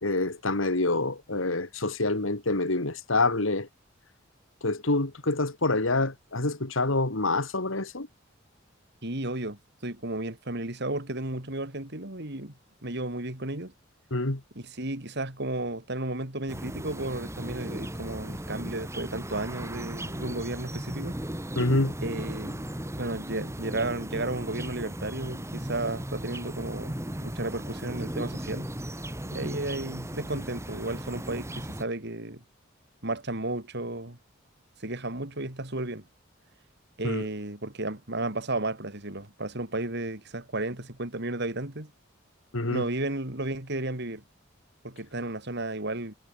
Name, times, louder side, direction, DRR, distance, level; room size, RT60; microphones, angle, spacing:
voice 1, 0.0-3.7 4.6-8.1 14.1-14.4 21.6-21.9 37.0-37.3 42.5-42.9, left 2 dB, 80° left, 2.5 m, -26 dB
voice 2, 9.0-12.5 12.8-13.7 14.6-21.2 22.0-22.6 23.0-28.7 29.3-32.4 33.0-34.2 34.8-36.0 37.0-41.9 42.7-44.2 44.8-46.1, right 2 dB, 60° right, 4.1 m, -33 dB
sound 1, 16.5-31.8, right 1 dB, 15° right, 2.5 m, -36 dB
head